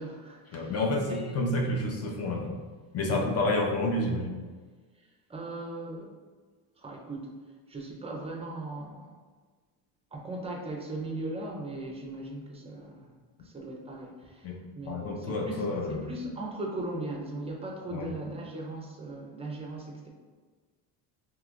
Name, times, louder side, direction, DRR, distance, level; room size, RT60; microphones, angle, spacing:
voice 1, 0.0-0.8 1.1-1.3 3.1-3.3 5.0-6.1 6.8-7.3 7.7-9.1 10.1-13.1 13.4-20.1, right 2 dB, 15° right, 0 dB, 0.5 m, -38 dB
voice 2, 0.5-2.5 2.9-4.3 14.4-14.6 14.9-16.1 17.9-18.1, left 2 dB, 35° left, 1 dB, 0.6 m, -29 dB
3.0 x 2.4 x 3.5 m, 1.4 s
cardioid pair, 110°, 45 cm